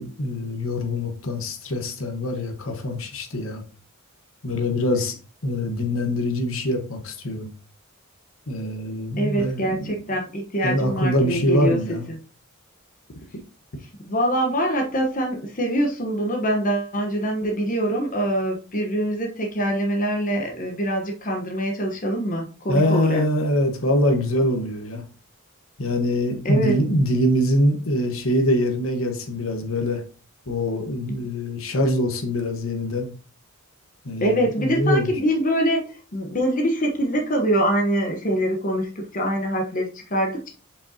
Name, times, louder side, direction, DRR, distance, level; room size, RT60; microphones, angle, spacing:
voice 1, 0.0-3.6 4.4-5.1 5.4-7.5 8.5-10.0 10.6-12.1 22.7-25.0 25.8-30.0 30.5-33.1 34.0-35.1, left 1 dB, 70° left, 5 dB, 1.3 m, -24 dB
voice 2, 9.2-11.8 12.1-12.2 14.1-23.3 26.4-26.7 34.2-40.5, right 1 dB, 40° left, 2 dB, 1.1 m, -24 dB
7.3 x 5.5 x 2.8 m, 0.37 s
head